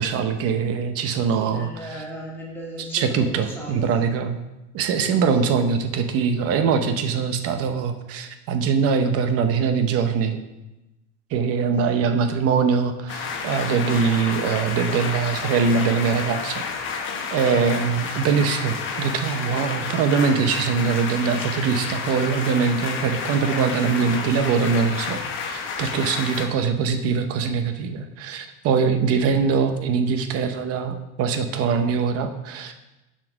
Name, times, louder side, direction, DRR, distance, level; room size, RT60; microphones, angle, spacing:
voice 1, 0.0-1.7 2.9-4.4 4.7-10.4 11.3-16.6 17.3-32.7, right 6 dB, 45° right, 8 dB, 0.8 m, -22 dB
voice 2, 1.2-3.9 5.0-5.5 11.8-12.1 23.2-23.8, equal, 5° left, -4 dB, 1.8 m, -38 dB
sound 1, 13.1-26.5, left 5 dB, 35° left, 1.0 m, -30 dB
7.3 x 5.1 x 6.0 m, 0.99 s
cardioid pair, 165°, 33 cm